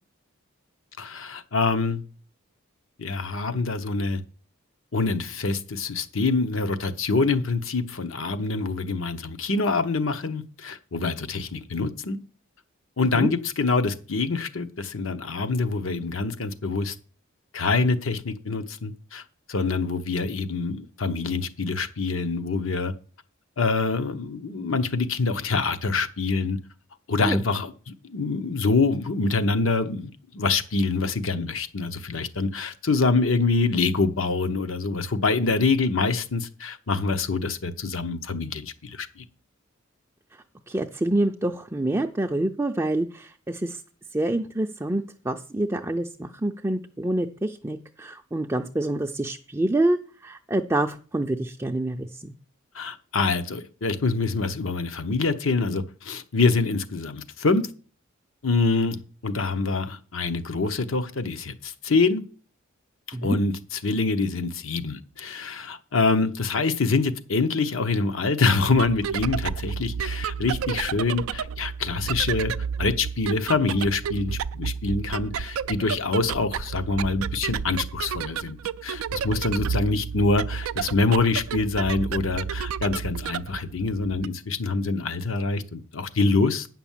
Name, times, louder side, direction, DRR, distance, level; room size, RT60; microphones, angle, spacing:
voice 1, 1.0-2.0 3.0-4.2 4.9-12.2 13.0-16.9 17.5-19.2 19.5-22.9 23.6-26.6 27.1-39.2 52.7-57.6 58.4-62.2 63.2-72.5 72.8-78.6 78.8-86.7, left 3 dB, 70° left, 0.9 m, -25 dB
voice 2, 40.7-43.8 44.1-52.3 63.1-63.4, right 1 dB, 15° right, 0.4 m, -27 dB
sound 1, 68.6-84.3, right 7 dB, 80° right, 0.4 m, -31 dB
9.2 x 6.0 x 7.3 m
head